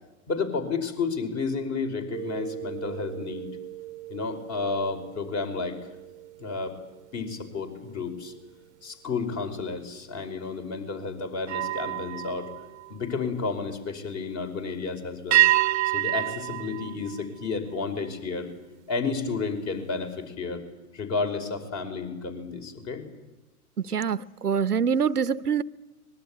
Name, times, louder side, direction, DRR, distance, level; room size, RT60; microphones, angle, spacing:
voice 1, 0.3-3.5 4.1-5.8 6.4-6.7 7.1-8.3 8.8-12.5 12.9-15.4 15.9-18.5 18.9-20.7 20.9-23.1, left 4 dB, 30° left, 5.3 m, -31 dB
sound 1, 2.1-7.7 8.1-8.4 11.4-13.6 15.3-17.9, right 16 dB, 50° right, 0.9 m, -30 dB
voice 2, 23.8-25.6, right 7 dB, 85° right, 0.9 m, -25 dB
25.0 x 21.5 x 9.9 m
figure-of-eight pair, 105°, 45 cm